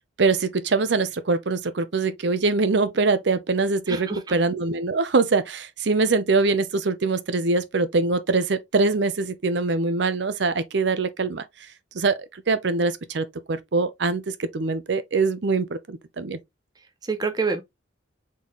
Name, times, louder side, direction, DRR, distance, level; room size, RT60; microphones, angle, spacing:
voice 1, 0.2-11.4 11.9-16.4, right 3 dB, 65° right, 0.6 m, -23 dB
voice 2, 3.9-4.3 17.0-17.6, right 4 dB, 20° right, 0.7 m, -27 dB
4.0 x 3.8 x 3.0 m
head